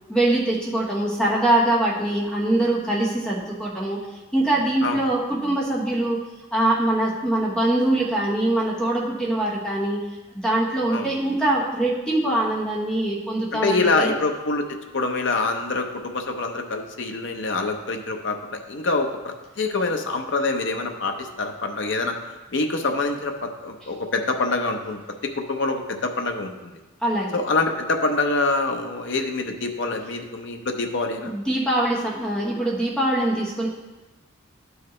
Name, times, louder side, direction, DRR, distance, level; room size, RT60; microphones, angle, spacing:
voice 1, 0.1-4.0 4.3-6.2 6.5-10.0 10.3-14.1 27.0-27.4 31.2-33.7, right 1 dB, 5° left, -5 dB, 1.1 m, -23 dB
voice 2, 13.5-14.6 14.9-22.1 22.5-25.0 25.4-26.7 27.3-31.3, left 3 dB, 60° left, 4 dB, 0.7 m, -25 dB
12.0 x 4.8 x 3.2 m, 1.1 s
head